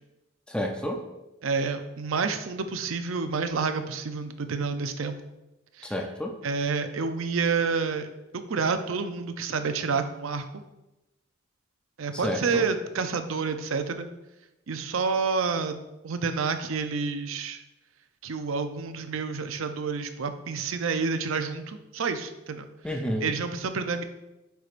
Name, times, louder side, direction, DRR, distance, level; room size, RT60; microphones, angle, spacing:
voice 1, 0.5-1.0 5.8-6.3 12.1-12.7 22.8-23.3, equal, 5° left, 2 dB, 0.5 m, -30 dB
voice 2, 1.4-5.2 5.8-5.9 6.4-8.1 8.3-10.5 12.0-14.1 14.7-15.8 16.0-17.6 18.2-22.6 23.2-24.0, right 5 dB, 85° right, 8 dB, 0.5 m, -29 dB
9.3 x 4.7 x 2.5 m, 0.99 s
head